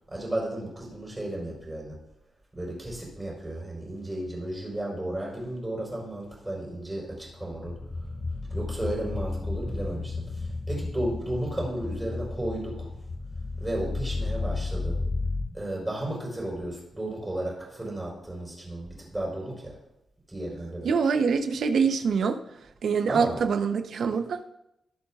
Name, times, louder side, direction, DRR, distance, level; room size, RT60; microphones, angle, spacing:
voice 1, 0.1-2.0 2.5-7.7 8.5-12.9 13.6-15.0 15.5-19.7 20.3-20.9 23.1-23.4, right 1 dB, 10° right, -4 dB, 4.3 m, -34 dB
sound 1, 7.2-15.4, left 3 dB, 45° left, 2.0 m, -33 dB
voice 2, 20.8-22.4 22.8-24.4, right 5 dB, 65° right, 8 dB, 0.7 m, -24 dB
18.5 x 8.1 x 2.4 m, 0.83 s
wide cardioid pair, 150°, 0 cm